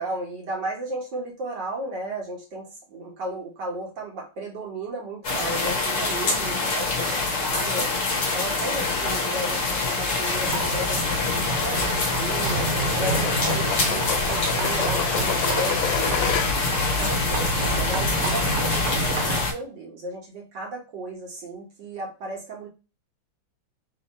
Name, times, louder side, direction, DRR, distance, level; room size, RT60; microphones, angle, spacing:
voice 1, 0.0-7.9 8.3-11.2 11.6-12.7 13.0-16.6 17.0-22.7, right 2 dB, 55° right, -2 dB, 1.8 m, -34 dB
sound 1, 5.2-19.5, left 3 dB, 45° left, 1.1 m, -25 dB
sound 2, 8.7-16.8, left 8 dB, 75° left, 1.3 m, -32 dB
sound 3, 10.4-19.4, right 2 dB, 90° right, 1.7 m, -30 dB
3.8 x 2.8 x 4.1 m, 0.30 s
omnidirectional pair, 2.4 m